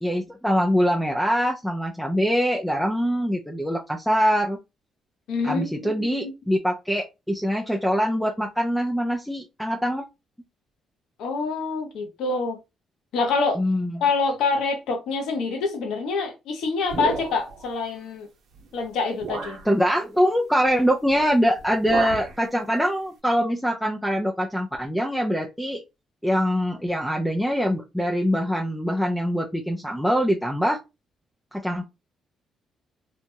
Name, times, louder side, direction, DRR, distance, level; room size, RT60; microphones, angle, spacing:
voice 1, 0.0-4.6 5.4-10.0 13.6-13.9 19.7-25.8 26.2-30.8 31.5-31.8, equal, 5° left, 0.5 m, -23 dB
voice 2, 5.3-6.3 11.2-12.6 13.1-13.6 14.0-18.3 18.7-19.6, left 4 dB, 85° left, 0.8 m, -26 dB
sound 1, 16.9-17.7 18.6-18.7 19.2-19.7 21.1-21.3 21.6-22.4, right 5 dB, 70° right, 0.8 m, -32 dB
2.9 x 2.2 x 2.7 m
cardioid pair, 90°, 0 cm